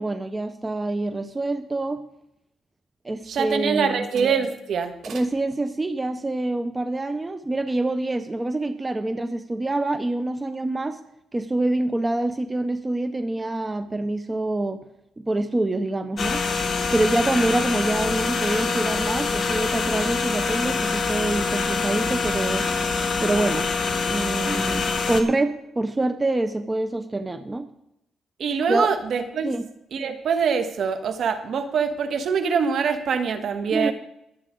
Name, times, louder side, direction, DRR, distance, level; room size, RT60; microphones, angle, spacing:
voice 1, 0.0-2.1 3.0-4.1 5.1-11.0 11.3-14.8 15.2-16.4 16.9-22.7 23.2-23.7 24.0-27.7 28.7-28.9 29.4-29.6 33.7-33.9, right 2 dB, 20° right, 9 dB, 0.8 m, -26 dB
voice 2, 3.3-5.2 28.4-29.5 29.9-33.9, right 6 dB, 60° right, 7 dB, 1.7 m, -24 dB
sound 1, 16.2-25.2, left 4 dB, 45° left, 2.0 m, -25 dB
22.5 x 8.1 x 3.8 m, 0.80 s
cardioid pair, 90°, 0 cm